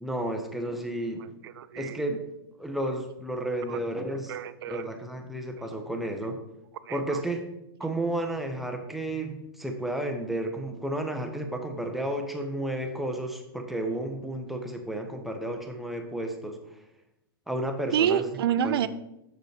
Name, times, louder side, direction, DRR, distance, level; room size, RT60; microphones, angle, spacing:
voice 1, 0.0-1.3 1.8-2.2 2.6-4.3 4.7-6.4 6.9-7.5 7.8-16.6 17.5-18.3 18.6-18.8, right 1 dB, ahead, 4 dB, 0.7 m, -32 dB
voice 2, 1.4-2.0 3.7-3.8 4.3-4.9 6.8-7.2 17.9-18.9, right 9 dB, 75° right, 14 dB, 0.5 m, -28 dB
6.6 x 6.6 x 3.3 m, 0.87 s
hypercardioid pair, 145°, 13 cm